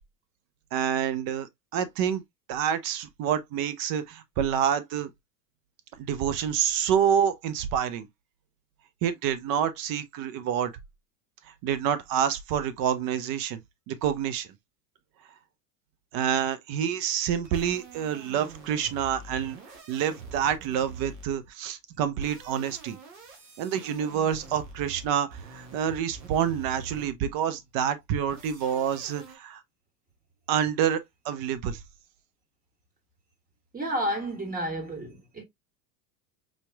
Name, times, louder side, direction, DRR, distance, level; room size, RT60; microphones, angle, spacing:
voice 1, 0.7-1.5 1.7-2.2 2.5-5.1 6.0-8.1 9.0-10.7 11.6-13.6 13.9-14.5 16.1-19.6 19.9-23.0 23.6-29.6 30.5-31.8, right 9 dB, 45° right, 0.7 m, -27 dB
sound 1, 17.4-21.5 22.1-27.3 28.3-29.4, right 4 dB, 85° right, 1.4 m, -45 dB
voice 2, 33.7-35.4, equal, 15° right, 1.7 m, -31 dB
4.2 x 3.0 x 2.2 m
hypercardioid pair, 95°, 48 cm